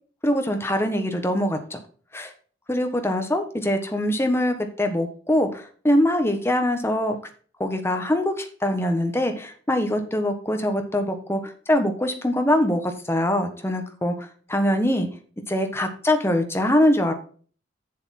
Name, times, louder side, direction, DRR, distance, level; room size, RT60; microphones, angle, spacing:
voice 1, 0.2-1.8 2.1-2.3 2.7-7.2 7.6-15.1 15.5-17.1, left 1 dB, 15° left, 6 dB, 1.3 m, -23 dB
7.4 x 7.1 x 4.2 m, 0.42 s
head